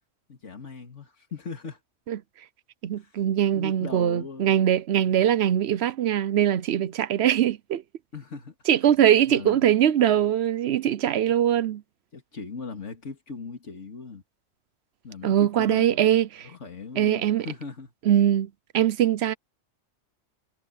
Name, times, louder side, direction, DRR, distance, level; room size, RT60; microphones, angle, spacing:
voice 1, 0.3-1.8 3.0-3.1 3.5-4.6 8.1-8.5 9.2-9.7 12.1-14.2 15.0-16.0 16.4-17.9, left 4 dB, 85° left, 2.6 m, -39 dB
voice 2, 2.8-7.8 8.7-11.8 15.2-16.5 17.0-17.5 18.1-19.3, right 10 dB, 65° right, 0.9 m, -22 dB
omnidirectional pair, 1.2 m